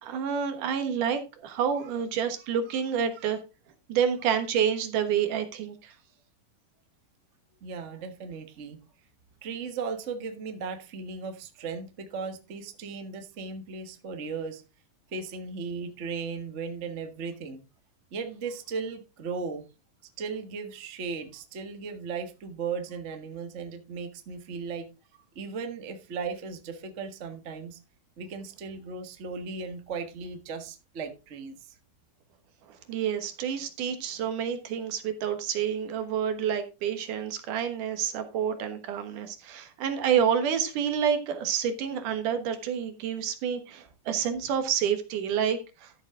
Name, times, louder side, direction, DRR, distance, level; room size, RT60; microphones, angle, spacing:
voice 1, 0.0-3.4 3.9-5.9 32.7-45.9, right 8 dB, 75° right, 2.8 m, -28 dB
voice 2, 7.6-8.8 9.4-14.6 15.1-17.6 18.1-19.6 20.2-24.9 25.3-27.8 28.2-31.8, right 5 dB, 40° right, 1.0 m, -36 dB
13.0 x 7.3 x 3.7 m
omnidirectional pair, 3.7 m